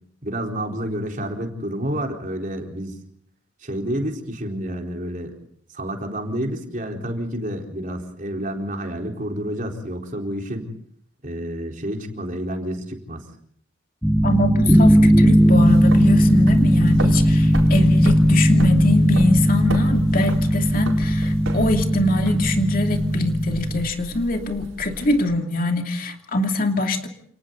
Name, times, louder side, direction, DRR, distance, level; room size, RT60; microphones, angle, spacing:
voice 1, 0.2-2.9 3.6-5.3 5.7-10.7 11.2-13.2, equal, 40° right, 2 dB, 4.2 m, -29 dB
sound 1, 14.0-23.9, equal, ahead, 1.2 m, -17 dB
voice 2, 14.2-27.1, left 2 dB, 45° left, 4 dB, 2.8 m, -23 dB
sound 2, 15.3-25.2, right 1 dB, 80° right, 4.6 m, -34 dB
29.0 x 29.0 x 4.0 m, 0.62 s
head